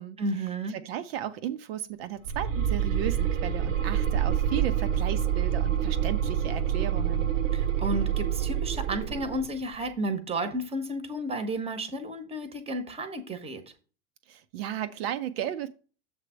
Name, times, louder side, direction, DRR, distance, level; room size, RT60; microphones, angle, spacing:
voice 1, 0.2-0.8 7.5-13.6, right 1 dB, 15° right, 10 dB, 1.0 m, -32 dB
voice 2, 0.7-7.3 14.3-15.7, right 11 dB, 50° right, 10 dB, 0.6 m, -34 dB
sound 1, 2.2-9.5, right 9 dB, 65° right, 0.9 m, -27 dB
7.3 x 3.4 x 6.2 m, 0.38 s
figure-of-eight pair, 95°, 41 cm